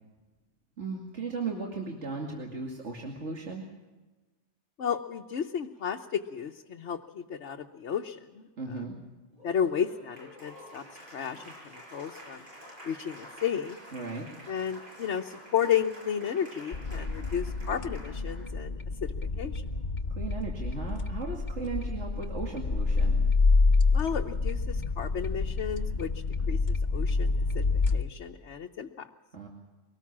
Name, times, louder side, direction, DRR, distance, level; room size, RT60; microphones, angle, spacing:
voice 1, 0.8-3.7 8.6-8.9 13.9-14.3 20.1-23.2 29.3-29.5, right 4 dB, 80° right, 0 dB, 2.7 m, -36 dB
voice 2, 4.8-8.5 9.4-10.8 11.1-12.4 12.8-13.8 14.5-19.6 23.9-27.6 27.9-29.1, left 8 dB, 75° left, 2 dB, 1.2 m, -33 dB
Applause, 9.3-18.5, equal, 45° right, 8.1 m, -49 dB
sound 1, 16.7-28.0, left 3 dB, 45° left, 1.2 m, -28 dB
23.5 x 18.5 x 7.4 m, 1.2 s
omnidirectional pair, 1.2 m